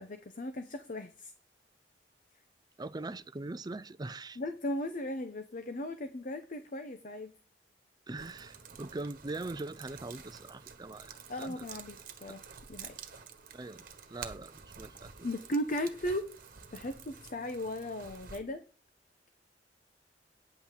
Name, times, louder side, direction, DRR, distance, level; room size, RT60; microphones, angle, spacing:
voice 1, 0.0-1.3 4.4-7.3 11.3-12.4 12.7-13.0 15.2-16.3 16.7-18.6, left 1 dB, 50° left, 0.9 m, -37 dB
voice 2, 2.8-4.4 8.1-11.1 11.4-11.6 13.5-13.8 14.1-15.3, right 2 dB, 25° right, 0.5 m, -41 dB
sound 1, 8.2-18.4, right 6 dB, 50° right, 1.5 m, -50 dB
9.4 x 6.0 x 8.3 m
head